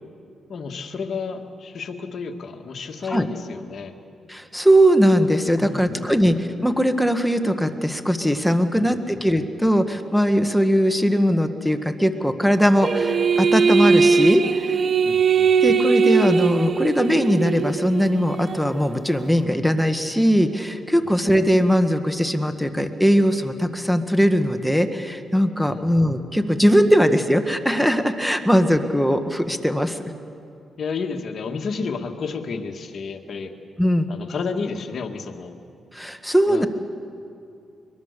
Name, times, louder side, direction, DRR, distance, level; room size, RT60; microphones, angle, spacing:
voice 1, 0.5-3.9 5.5-6.2 8.8-9.2 15.0-15.5 25.6-25.9 30.8-33.5 34.1-35.6 36.5-36.7, left 5 dB, 60° left, 4 dB, 1.9 m, -31 dB
voice 2, 4.3-14.8 15.6-30.0 33.8-34.1 35.9-36.7, equal, ahead, 7 dB, 1.4 m, -20 dB
sound 1, 12.8-18.7, right 5 dB, 50° right, 0.7 m, -20 dB
23.0 x 22.5 x 6.8 m, 2.5 s
cardioid pair, 80°, 0 cm